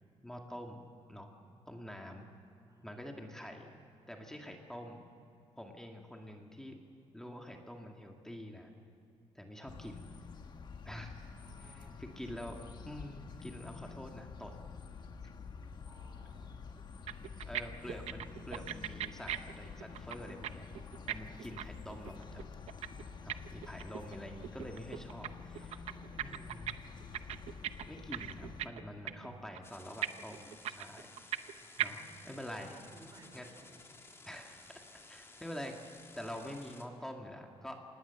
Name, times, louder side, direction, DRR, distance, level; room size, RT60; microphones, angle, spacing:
voice 1, 0.2-0.8 1.1-1.3 1.7-2.3 2.8-3.7 4.1-5.1 5.6-6.8 7.1-8.7 9.3-10.1 10.9-11.2 11.7-12.6 12.9-14.5 17.4-20.7 21.0-22.5 23.2-25.6 26.2-26.7 27.9-31.1 31.8-32.8 33.3-33.5 34.3-34.6 35.1-35.8 36.2-37.8, equal, 5° left, 2 dB, 2.0 m, -46 dB
voice 2, 2.7-3.6 11.5-12.0 15.8-16.8 17.3-17.8 24.9-25.0 25.6-27.0 29.0-29.4 31.6-33.7, right 2 dB, 35° right, 3 dB, 4.9 m, -60 dB
sound 1, 9.7-28.7, left 5 dB, 45° left, 1.5 m, -49 dB
sound 2, 16.8-16.9 17.1-17.6 17.9-20.5 20.7-24.2 24.4-25.3 25.5-26.7 27.0-28.8 29.1-29.3 29.5-29.6 30.0-31.5 31.8-31.9, right 11 dB, 80° right, 0.8 m, -38 dB
sound 3, 29.6-36.8, left 3 dB, 25° left, 2.1 m, -56 dB
27.0 x 19.0 x 7.0 m, 2.7 s
cardioid pair, 140°, 11 cm